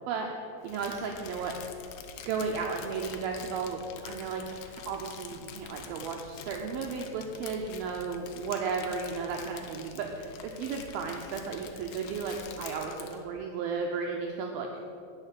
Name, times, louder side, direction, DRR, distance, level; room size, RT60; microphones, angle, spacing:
voice 1, 0.1-1.6 2.3-14.8, right 5 dB, 80° right, 2 dB, 2.2 m, -34 dB
Crumpling crinkling, 0.6-13.2, left 7 dB, 80° left, 2.4 m, -46 dB
9.9 x 6.5 x 7.4 m, 2.6 s
omnidirectional pair, 4.9 m